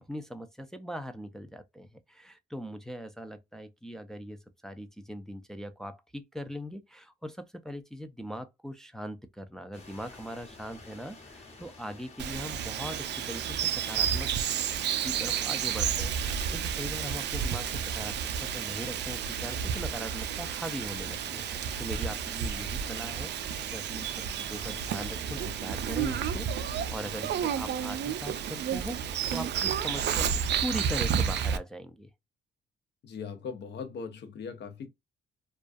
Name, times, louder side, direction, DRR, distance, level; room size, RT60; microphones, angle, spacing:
voice 1, 0.1-14.3 14.6-14.8 15.0-23.3 23.7-30.3 30.6-32.1, equal, ahead, 0.4 m, -40 dB
sound 1, 9.7-25.6, left 3 dB, 35° left, 0.9 m, -52 dB
Bird vocalization bird call bird song, 12.2-31.6, right 8 dB, 60° right, 0.4 m, -31 dB
voice 2, 33.0-34.9, left 5 dB, 60° left, 0.7 m, -39 dB
2.3 x 2.3 x 2.4 m
cardioid pair, 90°, 20 cm